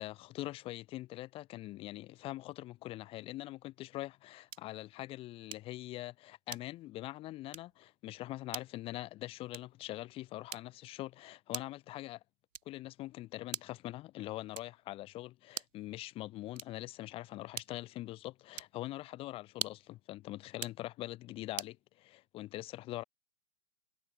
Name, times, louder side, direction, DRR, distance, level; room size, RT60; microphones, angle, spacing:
voice 1, 0.0-12.2 12.6-23.0, left 16 dB, 10° left, 2.8 m, -43 dB
sound 1, 4.5-4.8 5.5-5.8 6.5-6.9 7.5-7.8 8.5-8.8 9.5-9.8 10.5-10.9 11.5-11.9 12.5-12.9 13.5-13.9 14.5-14.9 15.5-15.9 16.5-16.9 17.5-17.9 18.5-18.8 19.5-20.0 20.5-20.8 21.6-21.8, right 9 dB, 50° right, 2.1 m, -44 dB
hypercardioid pair, 180°, 48 cm